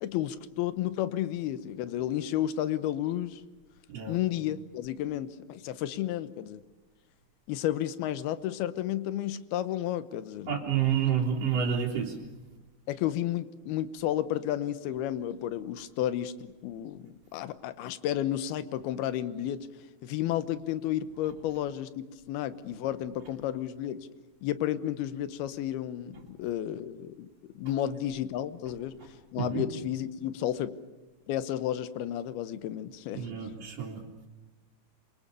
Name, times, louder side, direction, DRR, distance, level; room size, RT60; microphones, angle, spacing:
voice 1, 0.0-3.4 4.1-6.6 7.5-10.6 12.9-19.7 20.0-24.1 24.4-27.3 27.5-29.0 29.3-30.7 31.3-33.3, left 12 dB, 70° left, 13 dB, 2.8 m, -32 dB
voice 2, 10.5-12.2 29.4-29.6 33.1-34.0, right 8 dB, 40° right, -5 dB, 3.3 m, -29 dB
27.5 x 24.0 x 6.9 m, 1.2 s
omnidirectional pair, 5.0 m